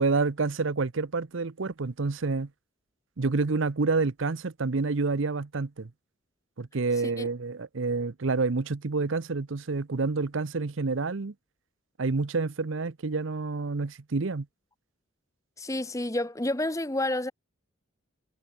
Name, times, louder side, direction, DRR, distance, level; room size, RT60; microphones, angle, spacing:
voice 1, 0.0-2.5 3.2-5.9 6.6-11.3 12.0-14.5, right 3 dB, 70° right, 0.7 m, -28 dB
voice 2, 15.6-17.3, left 1 dB, 15° left, 1.0 m, -29 dB
head